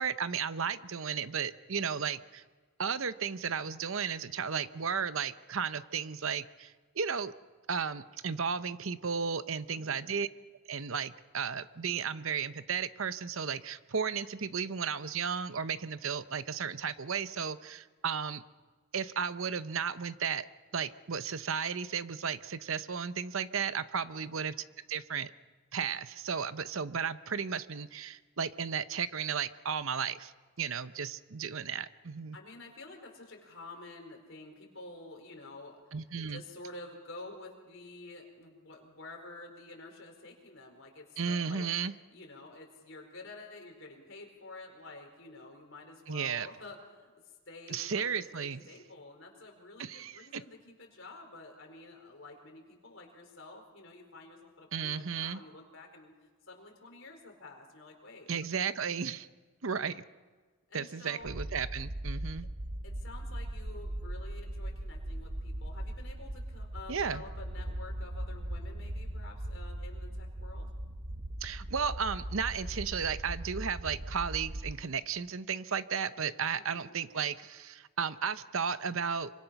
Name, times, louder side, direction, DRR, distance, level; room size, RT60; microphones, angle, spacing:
voice 1, 0.0-2.4 2.8-7.3 7.7-10.3 10.7-18.4 18.9-20.5 20.7-24.5 24.9-25.3 25.7-30.3 30.6-32.4 35.9-36.4 41.2-41.9 46.1-46.5 47.7-48.6 49.8-50.4 54.7-55.4 58.3-59.3 59.6-60.0 60.7-62.5 66.9-67.2 71.4-79.3, right 6 dB, 65° right, 13 dB, 0.8 m, -34 dB
voice 2, 9.7-10.1 24.1-24.4 32.3-35.8 36.3-41.7 42.1-56.1 56.5-58.3 60.7-61.4 62.8-70.7 76.5-77.0, left 2 dB, 60° left, 2 dB, 4.7 m, -50 dB
sound 1, 61.2-74.7, right 1 dB, 45° right, 1.1 m, -39 dB
27.0 x 25.0 x 5.9 m, 1.4 s
head